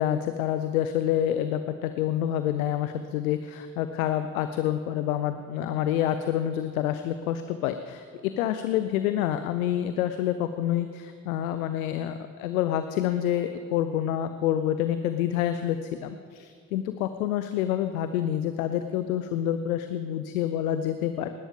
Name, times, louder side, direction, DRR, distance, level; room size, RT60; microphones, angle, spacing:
voice 1, 0.0-21.3, left 11 dB, 85° left, 10 dB, 0.6 m, -27 dB
19.0 x 12.0 x 3.7 m, 2.2 s
hypercardioid pair, 40°, 41 cm